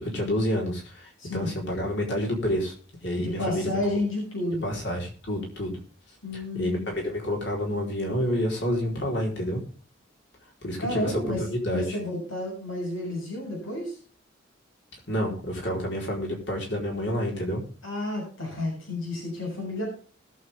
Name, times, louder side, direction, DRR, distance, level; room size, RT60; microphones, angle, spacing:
voice 1, 0.0-2.7 3.0-3.8 4.6-5.8 6.3-9.6 10.6-11.1 11.4-12.0 15.1-17.6, equal, 60° left, 0 dB, 4.4 m, -29 dB
voice 2, 1.2-1.5 3.2-4.6 6.2-6.9 10.8-14.0 17.8-19.8, left 1 dB, 80° left, -1 dB, 6.8 m, -31 dB
20.0 x 7.7 x 3.6 m, 0.38 s
head